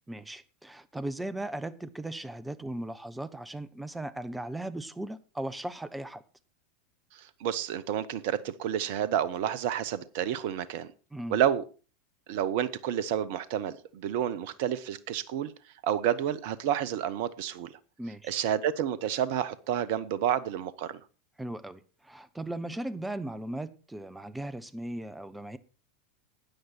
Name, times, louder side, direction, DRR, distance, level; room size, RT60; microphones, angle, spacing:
voice 1, 0.1-6.2 11.1-11.4 18.0-18.3 21.4-25.6, right 1 dB, 5° right, 1.1 m, -37 dB
voice 2, 7.1-10.9 11.3-11.6 12.3-15.5 15.8-17.7 18.3-21.0, right 10 dB, 55° right, 1.0 m, -30 dB
13.0 x 9.5 x 4.5 m
figure-of-eight pair, 85°, 0 cm